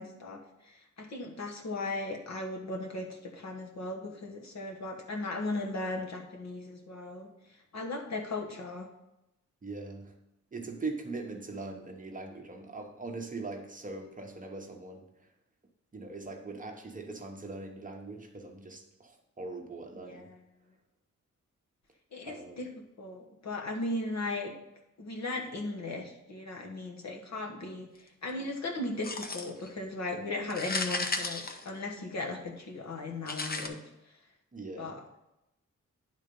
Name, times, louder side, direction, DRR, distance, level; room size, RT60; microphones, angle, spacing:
voice 1, 0.0-8.9 20.0-20.4 22.1-22.7 23.0-24.5 25.0-33.8 34.8-35.0, left 2 dB, 60° left, 2 dB, 1.3 m, -37 dB
voice 2, 9.6-10.2 10.5-15.3 15.9-20.3 22.2-22.6 34.5-34.9, right 3 dB, 25° right, 2 dB, 0.9 m, -41 dB
sound 1, 29.0-29.7 30.5-32.2 33.3-33.7, left 3 dB, 30° left, 0.6 m, -34 dB
10.0 x 3.8 x 5.2 m, 0.89 s
wide cardioid pair, 165°, 30 cm